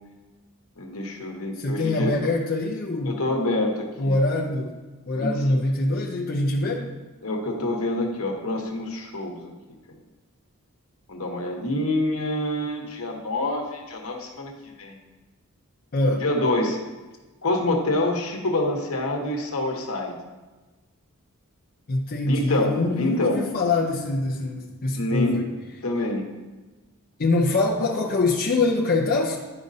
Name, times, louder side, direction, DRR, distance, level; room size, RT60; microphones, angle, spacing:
voice 1, 0.8-2.1 3.0-4.2 5.1-5.6 7.2-9.5 11.1-14.5 14.8-15.0 16.2-16.8 17.4-20.1 22.2-23.4 25.0-25.5 25.8-26.3, left 2 dB, 70° left, 2 dB, 1.1 m, -26 dB
voice 2, 1.6-3.4 4.0-4.8 5.1-6.9 15.9-16.2 21.9-25.5 27.2-29.4, left 2 dB, 45° left, -2 dB, 0.6 m, -24 dB
10.5 x 5.1 x 2.7 m, 1.2 s
head